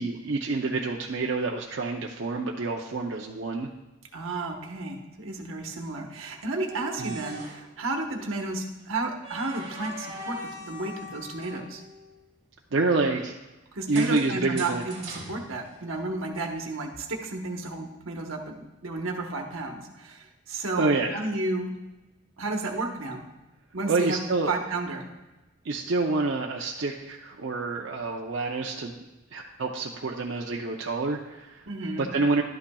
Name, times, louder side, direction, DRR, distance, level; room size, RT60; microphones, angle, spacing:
voice 1, 0.0-3.7 7.0-7.2 12.7-13.3 13.9-14.8 20.8-21.2 23.9-24.5 25.6-28.9 29.3-31.6 32.0-32.4, right 3 dB, 65° right, -1 dB, 0.6 m, -27 dB
voice 2, 4.1-11.8 13.7-21.7 22.4-23.2 23.7-24.2 24.5-25.1 31.7-32.1, right 2 dB, 85° right, 3 dB, 1.1 m, -32 dB
sound 1, 6.4-7.7 9.2-12.1 13.9-16.2, equal, 30° right, 1.8 m, -41 dB
11.5 x 8.7 x 2.3 m, 1.1 s
head